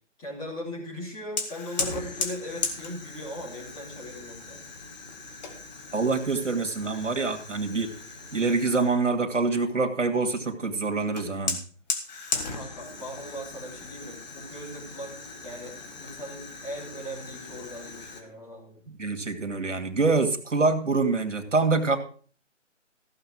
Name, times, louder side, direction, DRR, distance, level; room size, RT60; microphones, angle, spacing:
voice 1, 0.2-4.7 12.5-15.1 15.4-18.8, equal, 10° left, -5 dB, 3.4 m, -39 dB
Fire, 1.4-9.0 11.2-18.2, left 4 dB, 35° left, 2.1 m, -37 dB
voice 2, 5.9-7.9 8.3-11.6 18.9-22.0, right 3 dB, 75° right, 5 dB, 2.4 m, -25 dB
15.0 x 6.7 x 6.1 m, 0.43 s
figure-of-eight pair, 160°, 37 cm